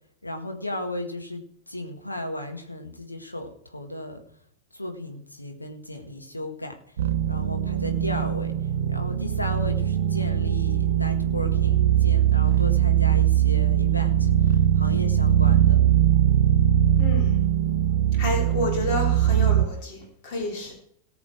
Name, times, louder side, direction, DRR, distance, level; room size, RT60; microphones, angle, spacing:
voice 1, 0.2-4.2 4.7-6.8 7.3-8.6 8.9-15.8, left 1 dB, 85° left, 4 dB, 1.8 m, -35 dB
sound 1, 7.0-19.7, right 10 dB, 65° right, 0.6 m, -21 dB
voice 2, 17.0-17.4 18.2-20.7, left 2 dB, 45° left, 1 dB, 3.4 m, -30 dB
18.0 x 7.0 x 4.6 m, 0.67 s
figure-of-eight pair, 90°, 0 cm